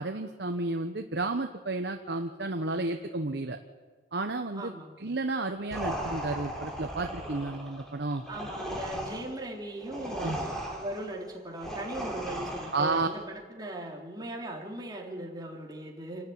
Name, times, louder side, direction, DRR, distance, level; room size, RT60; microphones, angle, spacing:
voice 1, 0.0-3.6 4.1-8.2 10.2-10.4 12.7-13.1, right 2 dB, 65° right, 5 dB, 1.0 m, -32 dB
voice 2, 4.6-5.0 8.3-13.2 13.5-16.3, right 1 dB, 20° right, -1 dB, 3.5 m, -39 dB
sound 1, 5.7-13.1, right 1 dB, 5° left, 3.5 m, -37 dB
27.0 x 13.0 x 9.4 m, 1.5 s
head